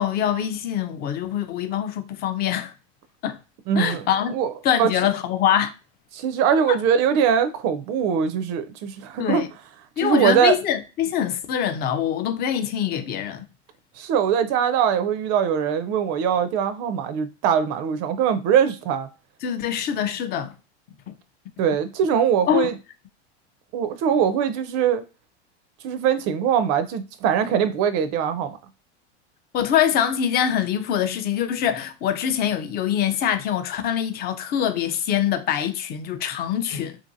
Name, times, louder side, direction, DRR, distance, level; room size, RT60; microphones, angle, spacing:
voice 1, 0.0-2.7 3.2-3.4 3.8-4.3 4.6-5.7 6.7-6.8 9.2-9.5 10.0-13.4 19.4-20.5 21.1-21.2 22.5-22.7 29.5-37.0, left 9 dB, 30° left, 0.4 m, -24 dB
voice 2, 3.7-4.0 4.3-4.5 4.8-4.9 6.1-9.5 10.0-10.6 14.0-19.1 21.6-22.7 23.7-25.0 25.8-28.6, right 8 dB, 45° right, 0.4 m, -22 dB
2.7 x 2.6 x 2.6 m
hypercardioid pair, 110°, 35 cm